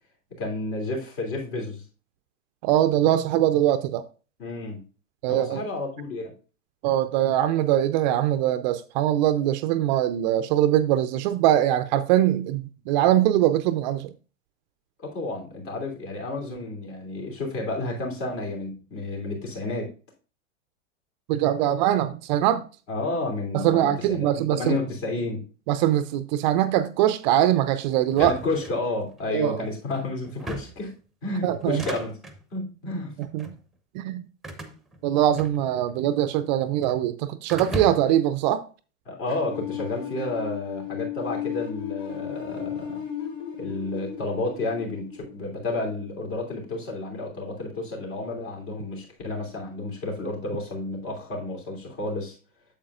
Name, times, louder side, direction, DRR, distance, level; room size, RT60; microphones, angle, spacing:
voice 1, 0.4-1.8 4.4-4.8 5.3-6.3 15.0-19.9 22.9-25.4 28.2-30.9 31.2-32.1 32.5-33.1 39.0-43.0 43.6-52.4, left 2 dB, 50° left, 3.2 m, -31 dB
voice 2, 2.6-4.0 5.2-5.6 6.8-14.1 21.3-22.6 23.5-24.8 25.7-28.3 29.3-29.7 31.4-31.8 33.2-33.5 33.9-34.2 35.0-38.6, right 12 dB, 40° right, 0.4 m, -22 dB
sound 1, 28.1-29.2 30.2-30.9 31.6-32.4 33.2-33.6 34.4-36.0 36.2-37.0 37.5-38.3, right 1 dB, ahead, 0.8 m, -37 dB
sound 2, 39.5-46.4, left 9 dB, 70° left, 2.3 m, -35 dB
8.6 x 7.3 x 2.4 m
hypercardioid pair, 100°, 38 cm